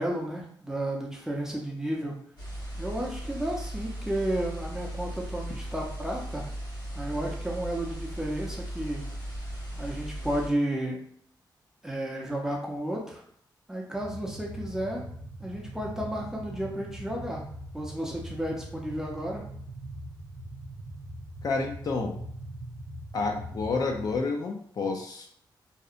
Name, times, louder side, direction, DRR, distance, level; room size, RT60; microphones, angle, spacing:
voice 1, 0.0-2.2 2.8-6.4 6.9-9.0 9.8-11.0 11.8-13.2 13.7-15.0 15.4-17.4 17.7-19.4, right 1 dB, 5° right, -2 dB, 0.5 m, -32 dB
sound 1, 2.4-10.5, right 1 dB, 70° left, 1.4 m, -37 dB
sound 2, 14.0-24.2, right 1 dB, 60° right, 0.4 m, -42 dB
voice 2, 21.4-22.2 23.1-25.3, left 3 dB, 55° left, 3 dB, 0.4 m, -29 dB
2.7 x 2.1 x 2.4 m, 0.63 s
wide cardioid pair, 140°, 8 cm